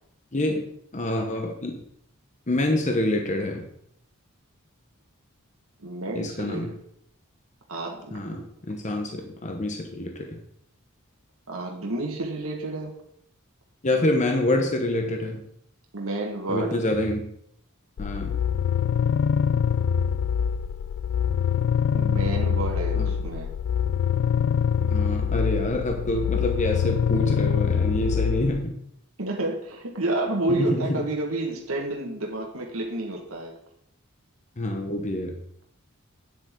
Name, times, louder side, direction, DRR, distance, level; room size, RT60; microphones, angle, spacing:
voice 1, 0.3-0.7 0.9-1.8 2.5-3.7 6.1-6.7 8.1-10.4 13.8-15.4 16.5-17.3 18.0-18.4 23.0-23.1 24.8-28.8 30.5-31.0 34.6-35.4, left 1 dB, 35° left, 3 dB, 1.0 m, -26 dB
voice 2, 5.8-6.8 7.7-8.4 11.5-12.9 15.9-16.8 21.9-23.5 29.2-33.5, right 2 dB, 70° right, 0 dB, 1.7 m, -30 dB
sound 1, 18.0-28.6, left 7 dB, 60° left, 0.3 m, -24 dB
9.4 x 8.2 x 3.8 m, 0.69 s
head